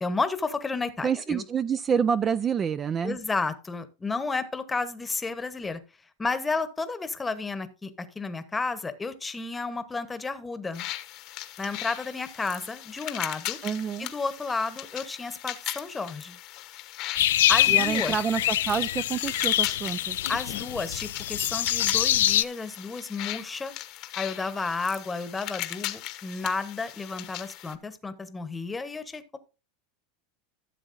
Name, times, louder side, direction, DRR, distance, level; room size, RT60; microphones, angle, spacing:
voice 1, 0.0-1.4 3.0-5.8 6.2-10.9 11.6-13.6 14.0-16.4 17.5-18.1 20.3-23.7 24.2-29.4, left 4 dB, 15° left, 1.0 m, -32 dB
voice 2, 1.0-3.2 13.6-14.1 17.7-20.2, right 7 dB, 25° right, 0.3 m, -27 dB
sound 1, 10.7-27.7, left 15 dB, 50° left, 1.0 m, -38 dB
sound 2, 17.2-22.4, left 13 dB, 90° left, 0.4 m, -25 dB
14.0 x 7.0 x 2.6 m
supercardioid pair, 130°, 0 cm